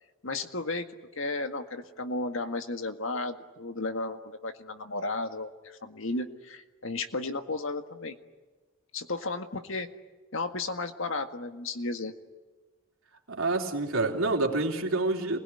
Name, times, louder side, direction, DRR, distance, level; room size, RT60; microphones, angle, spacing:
voice 1, 0.2-0.9 1.2-8.2 8.9-9.9 10.3-12.1, left 2 dB, 70° left, 7 dB, 1.8 m, -34 dB
voice 2, 13.3-15.4, right 2 dB, 75° right, 1 dB, 3.5 m, -27 dB
27.5 x 21.0 x 9.9 m, 1.2 s
head